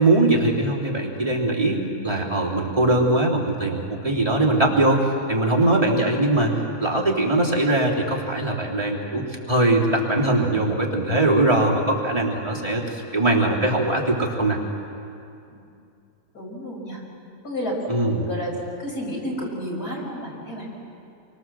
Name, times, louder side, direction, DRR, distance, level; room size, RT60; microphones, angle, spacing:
voice 1, 0.0-6.5 6.8-14.6 17.9-18.2, right 2 dB, 20° right, -5 dB, 3.3 m, -21 dB
voice 2, 16.3-17.0 17.4-18.5 18.8-20.6, equal, 75° left, -2 dB, 6.6 m, -31 dB
28.5 x 24.0 x 7.5 m, 2.6 s
omnidirectional pair, 1.7 m